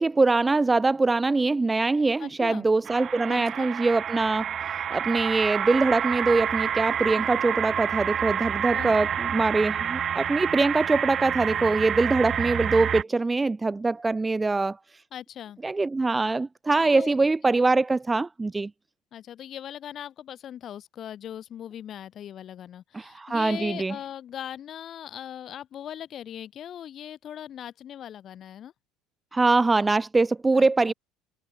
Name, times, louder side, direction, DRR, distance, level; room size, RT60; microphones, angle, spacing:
voice 1, 0.0-14.8 15.6-18.7 22.9-24.0 29.3-30.9, right 3 dB, 15° right, 3.7 m, -23 dB
voice 2, 2.2-2.6 3.3-3.7 8.7-9.1 15.1-15.6 16.9-17.2 19.1-28.7 30.5-30.9, left 10 dB, 45° left, 7.1 m, -39 dB
sound 1, 2.9-13.0, right 9 dB, 40° right, 2.2 m, -28 dB
supercardioid pair, 95°, 0 cm